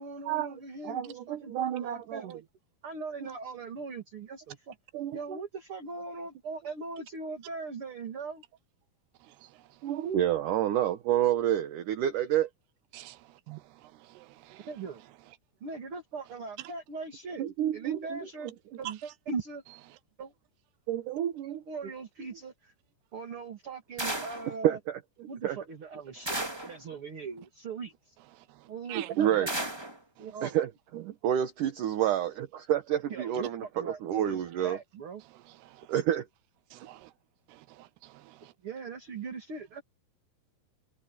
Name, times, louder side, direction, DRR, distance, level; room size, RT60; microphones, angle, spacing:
voice 1, 0.0-2.4 2.8-4.7 5.1-8.4 14.7-15.0 15.6-17.4 17.7-18.5 18.8-19.6 20.2-20.3 21.7-22.7 23.1-24.8 25.3-28.2 28.7-29.5 30.2-30.6 33.1-35.2 38.6-39.8, right 4 dB, 35° right, 2.8 m, -40 dB
voice 2, 0.8-2.3 3.2-3.3 4.9-5.4 9.8-12.5 17.4-18.2 20.9-21.6 24.6-25.0 25.4-25.6 29.0-29.5 30.4-34.8 35.9-36.3, right 11 dB, 65° right, 2.4 m, -29 dB
voice 3, 14.2-14.7 28.9-29.1 36.7-37.1 37.5-38.1, right 16 dB, 80° right, 2.8 m, -46 dB
sound 1, 24.0-24.5 26.3-26.8 29.5-30.0, right 1 dB, 10° right, 1.8 m, -33 dB
omnidirectional pair, 4.7 m